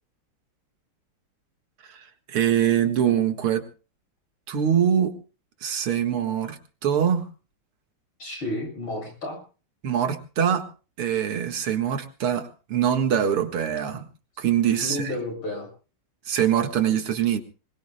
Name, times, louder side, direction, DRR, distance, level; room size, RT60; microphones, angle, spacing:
voice 1, 1.9-3.6 4.5-5.2 5.6-7.3 9.8-10.7 11.0-14.1 14.4-15.1 16.3-17.4, right 9 dB, 90° right, 7 dB, 2.6 m, -23 dB
voice 2, 8.2-9.4 14.8-15.7, left 1 dB, 75° left, 4 dB, 8.2 m, -31 dB
25.0 x 21.5 x 2.2 m, 0.35 s
omnidirectional pair, 2.3 m